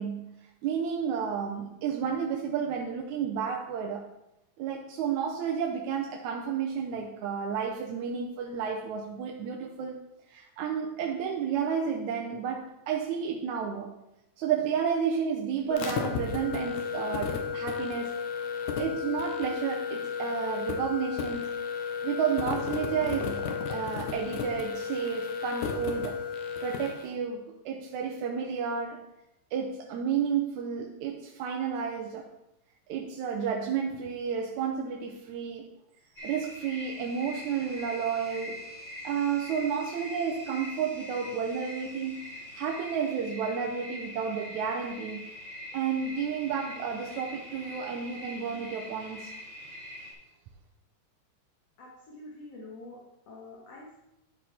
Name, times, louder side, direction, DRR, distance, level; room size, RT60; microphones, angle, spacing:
voice 1, 0.0-4.1 4.6-10.0 10.3-14.0 14.4-18.2 18.8-21.6 22.0-26.2 26.6-29.0 29.5-32.3 32.9-35.7 36.2-38.6 39.0-42.2 42.6-45.2 45.7-49.3, right 7 dB, 80° right, 0 dB, 2.1 m, -31 dB
sound 1, 15.7-27.0, left 6 dB, 80° left, 2.3 m, -33 dB
sound 2, 36.2-50.1, left 1 dB, 25° left, 2.4 m, -43 dB
voice 2, 51.8-53.0 53.3-54.0, left 2 dB, 60° left, -4 dB, 2.4 m, -46 dB
12.0 x 4.8 x 4.2 m, 0.87 s
omnidirectional pair, 3.4 m